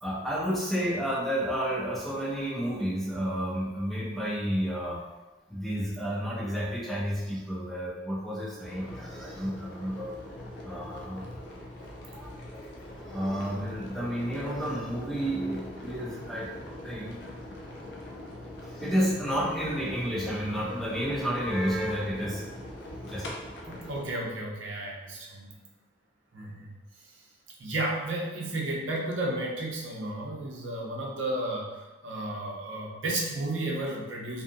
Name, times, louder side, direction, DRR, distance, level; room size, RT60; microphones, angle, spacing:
voice 1, 0.0-5.0 5.5-10.1 10.6-11.4 12.0-12.4 13.1-16.5 16.8-17.2 18.6-22.7 23.1-23.3, equal, ahead, -6 dB, 0.4 m, -31 dB
sound 1, 8.6-24.1, left 1 dB, 65° left, 0.5 m, -42 dB
voice 2, 23.7-25.6 26.3-26.7 27.6-31.7 32.0-34.4, right 1 dB, 80° right, -3 dB, 0.6 m, -33 dB
2.6 x 2.5 x 2.5 m, 1.1 s
head